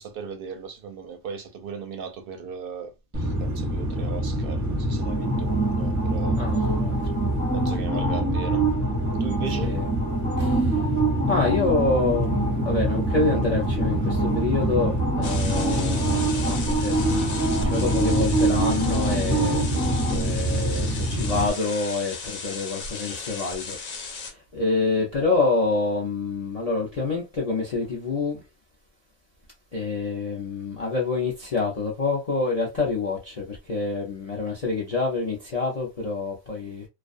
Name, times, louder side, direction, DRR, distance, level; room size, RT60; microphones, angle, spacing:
voice 1, 0.0-6.4 7.5-8.6 9.2-9.7, right 6 dB, 60° right, 0.6 m, -37 dB
sound 1, 3.1-21.5, right 1 dB, 20° right, 0.5 m, -24 dB
voice 2, 6.4-6.9 9.6-9.9 10.4-10.8 11.3-28.4 29.7-36.8, left 3 dB, 45° left, 0.5 m, -27 dB
sound 2, 15.2-24.3, left 3 dB, 85° left, 1.1 m, -35 dB
2.4 x 2.2 x 2.4 m
omnidirectional pair, 1.3 m